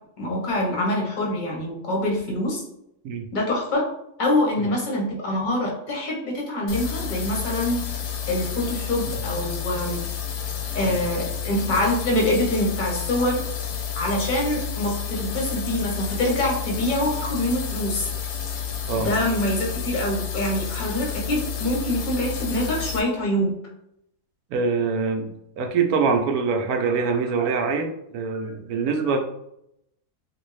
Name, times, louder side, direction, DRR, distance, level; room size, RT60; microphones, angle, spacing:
voice 1, 0.2-2.6 3.3-3.8 4.2-7.8 8.3-10.0 10.7-13.4 13.9-18.1 19.0-23.5, left 1 dB, 35° left, -1 dB, 0.8 m, -25 dB
sound 1, 6.7-23.0, left 7 dB, 70° left, 1.0 m, -30 dB
voice 2, 24.5-29.2, right 5 dB, 70° right, 4 dB, 1.0 m, -24 dB
3.3 x 2.6 x 3.2 m, 0.76 s
omnidirectional pair, 1.7 m